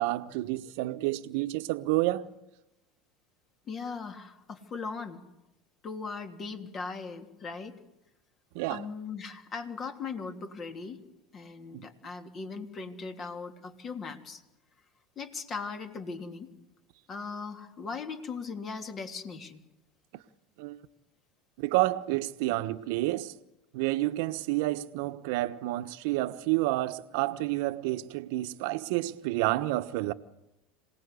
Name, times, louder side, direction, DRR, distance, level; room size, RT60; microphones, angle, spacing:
voice 1, 0.0-2.3 8.5-8.9 11.7-11.9 20.6-20.8 21.6-23.3 23.7-30.1, right 18 dB, 70° right, 1.1 m, -29 dB
voice 2, 3.7-5.2 5.8-7.8 8.7-11.0 11.3-14.4 15.2-16.5 17.1-19.6, left 4 dB, 40° left, 3.2 m, -39 dB
26.5 x 18.5 x 8.3 m
hypercardioid pair, 90°, 0 cm